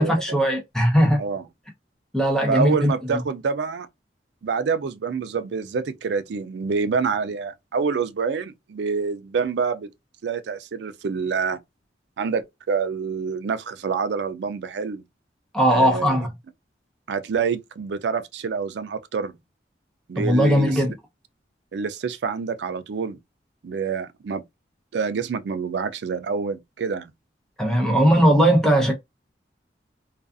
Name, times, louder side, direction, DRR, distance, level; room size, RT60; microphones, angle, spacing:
voice 1, 0.0-1.2 2.1-3.2 15.5-16.3 20.2-20.9 27.6-28.9, equal, 5° left, 0.7 m, -19 dB
voice 2, 2.5-3.9 4.4-9.9 10.2-11.6 12.2-15.0 15.7-16.2 17.1-19.3 20.1-20.8 21.7-23.2 23.6-24.4 24.9-27.1, right 5 dB, 75° right, 0.4 m, -27 dB
2.4 x 2.3 x 2.4 m
head